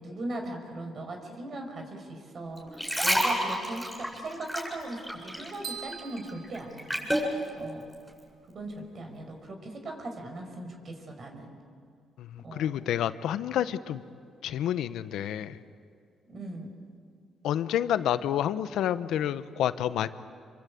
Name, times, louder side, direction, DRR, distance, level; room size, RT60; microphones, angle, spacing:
voice 1, 0.0-7.1 7.6-7.9 8.5-11.5 12.4-12.7 16.3-16.7, right 2 dB, 50° right, 3 dB, 5.2 m, -39 dB
sound 1, 2.6-5.6 5.9-7.3 7.9-8.1, equal, ahead, 7.9 m, -29 dB
sound 2, 5.6-7.6, right 6 dB, 65° right, 4.0 m, -43 dB
voice 2, 12.2-14.0 14.4-15.6 17.4-20.1, left 10 dB, 80° left, 13 dB, 0.9 m, -29 dB
27.5 x 23.5 x 8.5 m, 2.3 s
cardioid pair, 90°, 0 cm